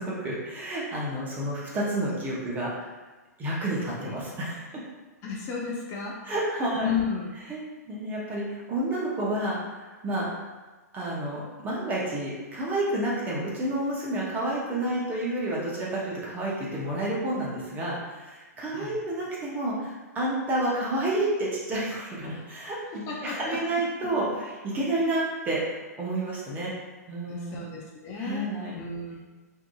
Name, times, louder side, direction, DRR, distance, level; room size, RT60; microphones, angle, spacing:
voice 1, 0.0-3.0 3.4-4.7 6.2-6.9 7.5-10.4 10.9-26.7 27.1-27.6 28.2-28.8, right 1 dB, 20° right, -5 dB, 0.7 m, -30 dB
voice 2, 5.2-6.2 6.8-7.3 18.7-19.0 22.9-24.1 27.3-29.2, left 6 dB, 30° left, -3 dB, 0.4 m, -33 dB
2.6 x 2.4 x 2.3 m, 1.2 s
hypercardioid pair, 120°, 9 cm